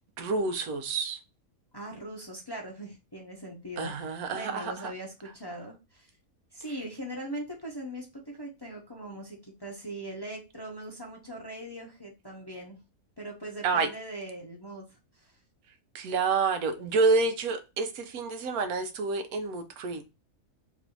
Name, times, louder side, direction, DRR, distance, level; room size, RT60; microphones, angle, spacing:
voice 1, 0.2-1.2 3.8-4.9 13.6-13.9 15.9-20.0, right 4 dB, 85° right, 1.2 m, -28 dB
voice 2, 1.7-3.9 4.3-6.1 6.5-12.8 13.2-14.8 15.2-15.3, right 1 dB, 25° left, 0.6 m, -40 dB
3.2 x 2.6 x 4.4 m
omnidirectional pair, 1.5 m